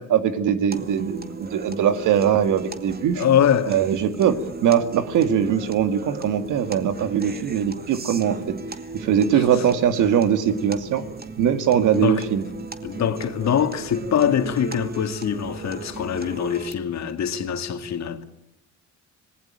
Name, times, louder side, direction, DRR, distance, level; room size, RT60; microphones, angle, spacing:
voice 1, 0.1-3.2 3.6-8.6 8.9-11.0 11.4-12.5, right 9 dB, 85° right, 2.2 m, -21 dB
sound 1, 0.7-16.7, right 3 dB, 30° right, 2.2 m, -37 dB
voice 2, 3.2-3.8 9.3-9.4 11.9-12.2 12.8-18.2, left 8 dB, 65° left, 2.4 m, -23 dB
26.0 x 19.5 x 9.0 m
cardioid pair, 90°, 30 cm